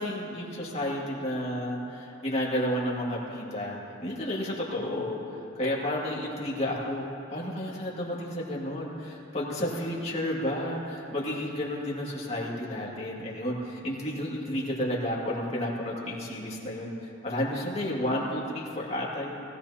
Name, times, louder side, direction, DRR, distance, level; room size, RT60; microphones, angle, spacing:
voice 1, 0.0-16.9 17.2-19.4, left 1 dB, 30° left, -5 dB, 2.3 m, -31 dB
20.0 x 16.5 x 2.9 m, 3.0 s
head